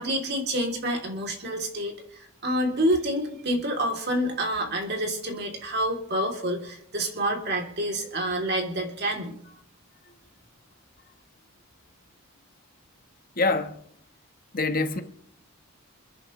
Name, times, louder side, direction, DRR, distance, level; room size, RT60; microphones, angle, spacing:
voice 1, 0.0-9.3, right 1 dB, 50° right, 3.0 m, -28 dB
voice 2, 13.4-13.8 14.5-15.0, left 3 dB, 40° left, 1.2 m, -25 dB
29.0 x 10.5 x 3.2 m
head